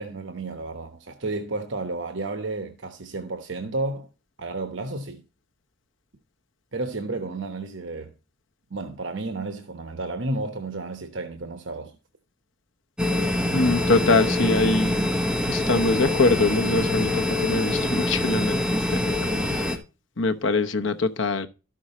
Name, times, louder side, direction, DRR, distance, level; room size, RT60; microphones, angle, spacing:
voice 1, 0.0-4.1 4.4-5.2 6.7-8.1 8.7-11.9, right 2 dB, 60° right, 1.0 m, -32 dB
sound 1, 13.0-19.8, left 1 dB, 5° right, 1.0 m, -25 dB
voice 2, 13.5-14.9 15.5-19.2 19.5-19.7 20.2-21.5, left 3 dB, 65° left, 1.0 m, -23 dB
13.0 x 6.3 x 4.2 m
head